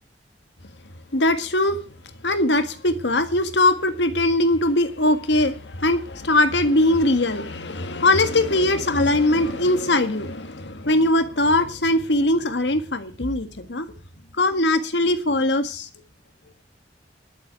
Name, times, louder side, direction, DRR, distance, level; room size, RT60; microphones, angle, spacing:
voice 1, 1.1-1.8 2.2-13.9 14.4-15.9, left 1 dB, 75° left, 1.7 m, -21 dB
12.0 x 7.3 x 9.3 m
head